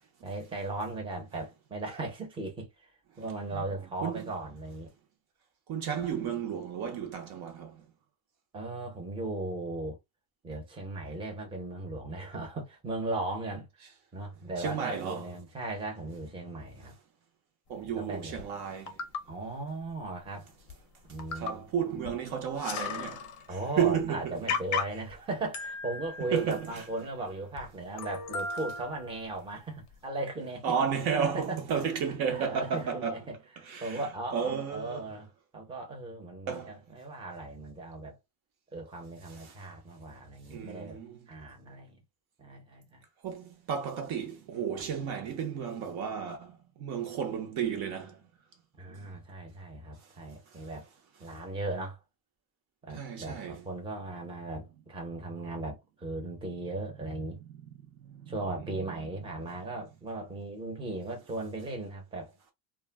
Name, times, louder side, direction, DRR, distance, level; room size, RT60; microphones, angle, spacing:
voice 1, 0.2-2.7 3.2-4.9 8.5-10.0 10.4-13.7 14.1-16.9 17.7-18.4 19.3-20.5 21.1-22.2 23.5-30.7 31.3-31.6 32.1-38.2 38.7-41.0 41.3-42.0 42.4-43.0 48.7-50.9 51.2-52.0 52.8-57.4 58.3-62.5, right 2 dB, 10° right, 0.7 m, -37 dB
voice 2, 4.0-4.3 5.7-7.8 14.6-15.2 17.7-19.0 21.3-24.4 26.3-26.8 30.6-33.2 33.6-34.0 34.3-35.0 36.5-36.7 39.3-39.6 40.5-41.2 43.2-48.2 52.9-53.6 58.2-58.3 58.9-59.0, right 7 dB, 50° right, 0.6 m, -33 dB
sound 1, 18.4-18.5 18.9-19.2 20.2-20.3 20.7-20.8 21.2-21.7 22.0-22.1 22.4-23.5 23.9-24.0 24.5-25.1 25.5-27.1 27.6-27.7 28.0-29.3 29.9-30.0, left 5 dB, 35° left, 0.6 m, -36 dB
2.2 x 2.1 x 3.3 m
cardioid pair, 145°, 49 cm